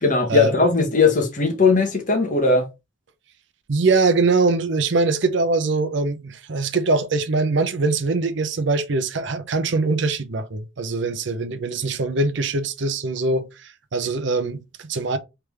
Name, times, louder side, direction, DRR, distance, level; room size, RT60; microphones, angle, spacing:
voice 1, 0.0-2.7, left 3 dB, 40° left, 1.0 m, -18 dB
voice 2, 3.7-15.2, right 3 dB, 65° right, 0.6 m, -22 dB
3.4 x 3.3 x 3.2 m
head